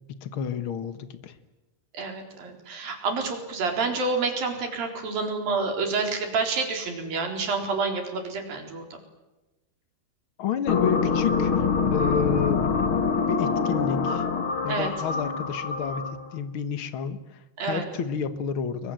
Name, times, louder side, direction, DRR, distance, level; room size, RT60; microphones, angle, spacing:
voice 1, 0.1-1.4 10.4-12.7 13.3-14.2 14.6-18.9, left 7 dB, 90° left, 10 dB, 1.1 m, -30 dB
voice 2, 1.9-9.0 14.7-14.9 17.6-17.8, right 4 dB, 60° right, 3 dB, 5.8 m, -28 dB
sound 1, 10.7-16.3, left 5 dB, 45° left, 1.8 m, -25 dB
30.0 x 22.5 x 7.7 m, 1.1 s
omnidirectional pair, 4.6 m